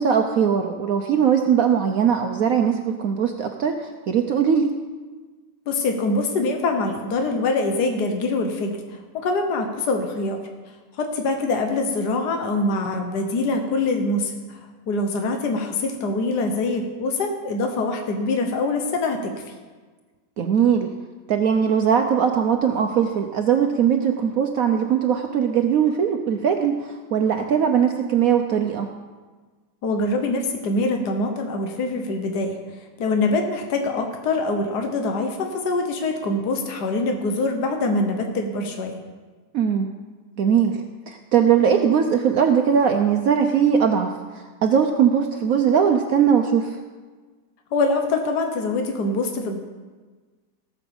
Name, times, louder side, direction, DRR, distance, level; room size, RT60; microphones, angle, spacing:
voice 1, 0.0-4.7 20.4-20.9 21.3-28.9 39.5-40.0 40.4-44.1 44.6-46.8, right 7 dB, 60° right, 5 dB, 1.0 m, -20 dB
voice 2, 5.7-10.4 11.0-14.6 14.9-19.3 29.8-32.6 33.0-39.0 47.7-49.6, left 2 dB, 70° left, 4 dB, 1.7 m, -24 dB
17.0 x 6.0 x 7.0 m, 1.4 s
omnidirectional pair, 1.9 m